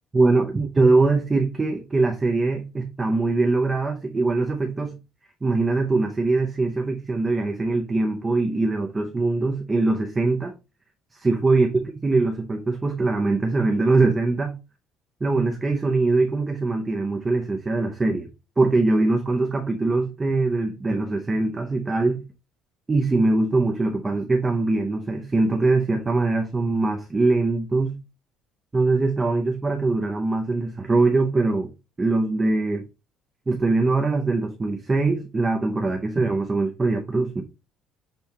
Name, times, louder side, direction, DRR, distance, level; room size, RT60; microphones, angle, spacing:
voice 1, 0.1-4.9 5.4-10.5 11.1-14.5 15.2-18.3 18.6-22.2 22.9-28.0 28.7-31.7 32.0-32.8 33.5-37.4, right 3 dB, 15° right, 0.4 m, -22 dB
6.4 x 2.2 x 2.8 m
cardioid pair, 170°, 0 cm